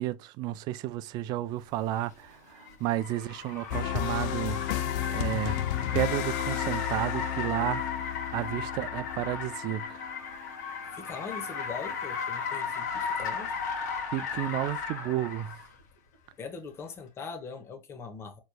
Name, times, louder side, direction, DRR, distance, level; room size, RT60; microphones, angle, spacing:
voice 1, 0.0-4.8 5.1-5.6 5.9-7.8 8.3-10.1 14.1-15.5, right 14 dB, 50° right, 0.4 m, -32 dB
Car, 1.8-15.7, left 6 dB, 85° left, 1.2 m, -35 dB
sound 1, 3.7-10.4, left 13 dB, 60° left, 0.4 m, -33 dB
voice 2, 10.9-13.6 16.4-18.4, left 5 dB, 30° left, 1.0 m, -41 dB
4.2 x 3.1 x 2.2 m
supercardioid pair, 120°, 9 cm